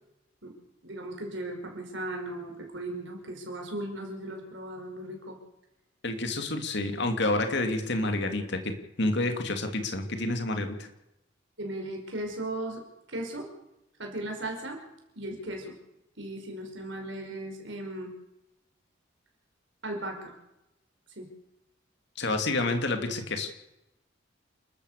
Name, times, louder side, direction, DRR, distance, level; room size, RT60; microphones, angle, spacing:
voice 1, 0.8-5.4 11.6-12.8 13.1-13.5 14.0-14.8 15.2-15.8 16.2-18.1 19.8-20.3 21.2-21.3, right 1 dB, 60° right, 2 dB, 5.4 m, -37 dB
voice 2, 6.0-10.9 22.2-23.5, left 2 dB, 60° left, 6 dB, 2.6 m, -29 dB
29.0 x 13.5 x 6.8 m, 0.91 s
head